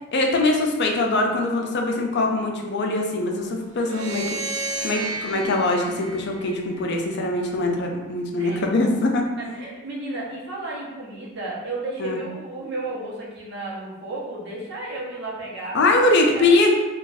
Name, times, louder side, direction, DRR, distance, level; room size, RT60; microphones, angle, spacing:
voice 1, 0.1-9.2 12.0-12.2 15.7-16.7, left 2 dB, 55° left, 2 dB, 0.5 m, -22 dB
sound 1, 3.8-7.1, right 3 dB, 85° right, 0.4 m, -32 dB
voice 2, 9.4-15.8 16.3-16.6, right 2 dB, 55° right, -5 dB, 0.8 m, -33 dB
2.4 x 2.4 x 4.0 m, 1.2 s
head